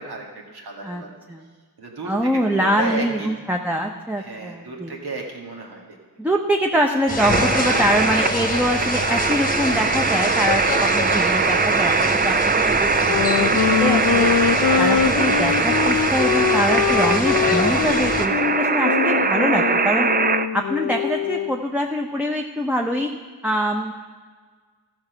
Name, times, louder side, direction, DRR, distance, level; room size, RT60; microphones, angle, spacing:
voice 1, 0.0-1.2 1.8-3.3 4.2-5.8, right 3 dB, 80° right, 0 dB, 1.9 m, -33 dB
voice 2, 2.0-4.9 6.2-14.3 14.8-20.1 20.5-23.1 23.4-23.9, equal, 5° right, 1 dB, 0.8 m, -24 dB
sound 1, 7.1-18.3, left 2 dB, 20° left, 1.2 m, -27 dB
sound 2, 7.2-20.5, right 4 dB, 25° right, 0.4 m, -21 dB
Wind instrument woodwind instrument, 12.9-21.6, left 8 dB, 50° left, 0.5 m, -23 dB
14.0 x 5.8 x 5.7 m, 1.5 s
cardioid pair, 55°, 38 cm